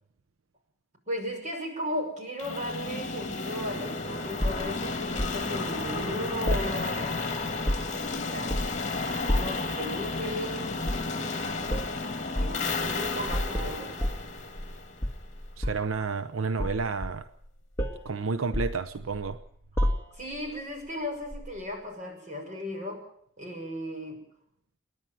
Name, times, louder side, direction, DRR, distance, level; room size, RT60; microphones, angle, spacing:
voice 1, 1.1-7.2 8.1-8.6 9.3-10.9 12.4-13.9 20.1-23.0 23.4-24.2, left 1 dB, 35° right, 6.2 m, -36 dB
sound 1, 2.4-15.3, left 3 dB, 35° left, 2.6 m, -33 dB
sound 2, 4.4-5.4 6.5-7.2 7.5-8.1 8.5-8.9 9.3-9.7 10.8-11.1 11.7-11.9 12.4-12.6 13.3-14.7 15.0-16.0 16.6-17.5 17.8-18.1 18.5-19.3 19.8-20.4 21.3-21.5, equal, 15° left, 2.1 m, -30 dB
voice 2, 15.6-17.3 18.0-19.4, right 4 dB, 85° right, 0.8 m, -30 dB
28.5 x 10.5 x 9.2 m
head